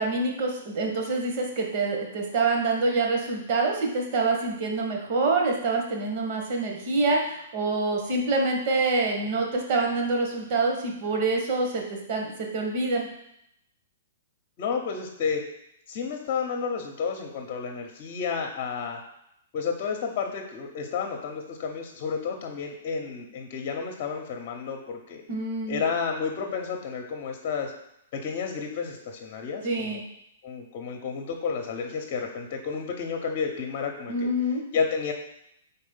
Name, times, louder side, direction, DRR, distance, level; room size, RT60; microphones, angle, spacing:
voice 1, 0.0-13.1 25.3-25.8 29.6-30.0 34.1-34.6, right 3 dB, 50° right, 0 dB, 1.7 m, -26 dB
voice 2, 14.6-15.4 15.9-19.0 19.5-25.2 25.7-27.7 28.1-30.0 30.4-34.3 34.7-35.1, left 5 dB, 45° left, 2 dB, 0.9 m, -31 dB
4.9 x 4.1 x 5.6 m, 0.78 s
hypercardioid pair, 120°, 0 cm